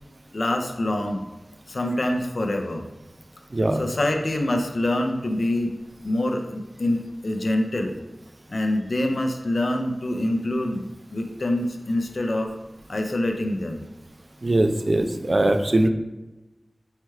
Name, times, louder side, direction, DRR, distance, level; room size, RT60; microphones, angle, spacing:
voice 1, 0.3-1.2 1.7-2.9 3.7-5.8 6.0-8.0 8.5-12.5 12.9-13.9, left 1 dB, 65° left, 4 dB, 0.4 m, -25 dB
voice 2, 14.4-15.9, right 1 dB, 45° right, 6 dB, 0.3 m, -21 dB
5.5 x 2.3 x 3.1 m, 1.1 s
wide cardioid pair, 70°, 0 cm